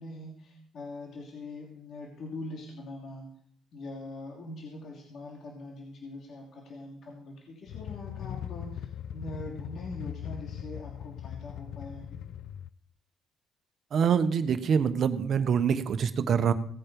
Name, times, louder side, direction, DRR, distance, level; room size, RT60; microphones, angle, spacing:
voice 1, 0.0-3.3 3.7-12.2, left 2 dB, 60° left, 0 dB, 2.8 m, -42 dB
sound 1, 7.7-12.7, left 10 dB, 75° left, 0.5 m, -40 dB
voice 2, 13.9-16.5, right 7 dB, 55° right, 11 dB, 1.2 m, -25 dB
17.5 x 8.7 x 5.4 m, 0.63 s
cardioid pair, 90°, 0 cm